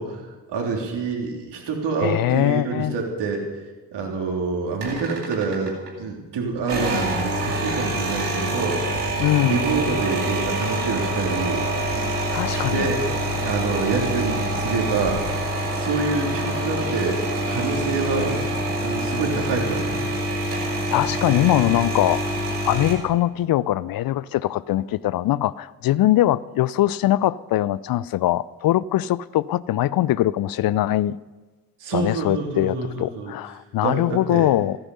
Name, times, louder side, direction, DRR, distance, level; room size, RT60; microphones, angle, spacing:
voice 1, 0.0-3.4 3.9-9.0 9.4-11.6 12.5-13.0 13.3-15.4 15.8-17.2 17.5-20.0 31.8-33.3 33.8-34.5, right 4 dB, 60° right, 3.5 m, -27 dB
voice 2, 2.0-2.9 9.2-9.6 12.3-12.9 20.7-22.2 22.7-31.2 31.9-34.8, left 14 dB, 50° left, 0.6 m, -22 dB
sound 1, 4.8-5.9 6.6-22.9, right 1 dB, 90° right, 2.4 m, -26 dB
15.0 x 14.5 x 5.5 m
figure-of-eight pair, 40°, 46 cm